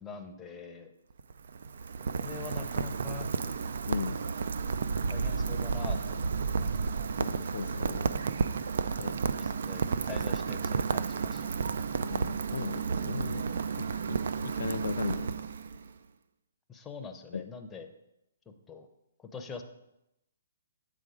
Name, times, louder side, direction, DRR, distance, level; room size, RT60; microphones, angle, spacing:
voice 1, 0.0-0.9 2.0-3.3 5.1-6.3 9.4-11.5 16.7-17.9 18.5-18.9 19.2-19.6, left 5 dB, 10° left, 5 dB, 0.6 m, -43 dB
Rain, 1.1-15.9, right 5 dB, 65° right, 0.3 m, -32 dB
voice 2, 3.9-4.2 7.2-8.2 9.0-9.2 12.0-13.4 13.8-15.4 17.3-17.4, left 5 dB, 75° left, 10 dB, 0.3 m, -37 dB
8.2 x 3.7 x 4.9 m, 0.87 s
hypercardioid pair, 140°, 0 cm